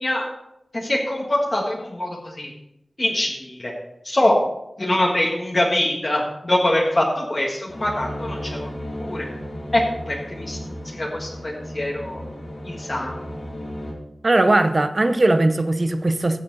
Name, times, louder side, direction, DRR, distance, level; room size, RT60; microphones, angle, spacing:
voice 1, 0.7-2.5 3.0-3.7 4.0-4.4 4.8-8.7 9.0-9.3 9.7-10.6 10.9-12.2 12.6-13.1, left 1 dB, 40° left, 1.6 m, -23 dB
sound 1, 7.7-13.9, equal, 75° left, 2.6 m, -34 dB
voice 2, 14.2-16.4, right 2 dB, 45° right, 0.8 m, -19 dB
15.0 x 7.3 x 4.0 m
wide cardioid pair, 80°, 0 cm